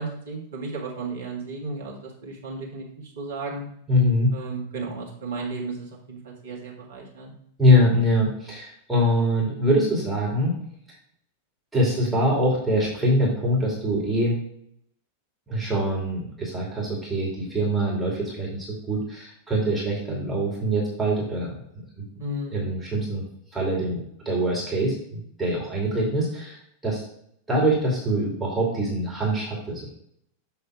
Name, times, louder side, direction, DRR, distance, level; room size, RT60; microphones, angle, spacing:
voice 1, 0.0-2.8 3.2-3.6 4.3-7.3 20.1-20.4 22.2-22.6, right 2 dB, 60° right, -2 dB, 1.9 m, -34 dB
voice 2, 3.9-4.4 7.6-10.5 11.7-14.4 15.5-21.5 22.0-22.1 22.5-23.2 23.5-24.0 24.2-27.0 27.5-29.9, equal, 5° right, -6 dB, 2.4 m, -23 dB
7.2 x 3.3 x 4.9 m, 0.71 s
figure-of-eight pair, 90°, 0 cm